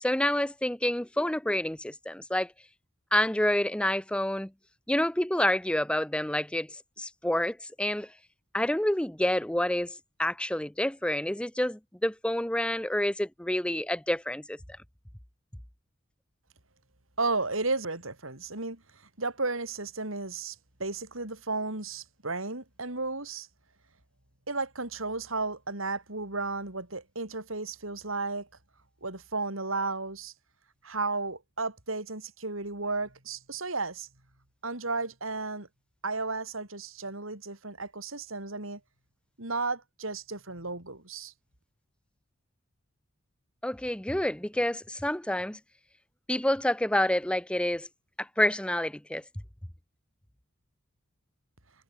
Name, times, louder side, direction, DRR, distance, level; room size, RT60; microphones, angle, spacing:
voice 1, 0.0-2.5 3.1-4.5 4.9-6.7 7.0-8.1 8.5-14.6 43.6-45.6 46.3-47.9 48.2-49.2, left 1 dB, 5° left, 0.6 m, -28 dB
voice 2, 17.2-18.8 19.2-23.5 24.5-28.5 29.0-30.3 30.8-34.1 34.6-35.7 36.0-38.8 39.4-41.3, right 3 dB, 75° right, 5.6 m, -33 dB
head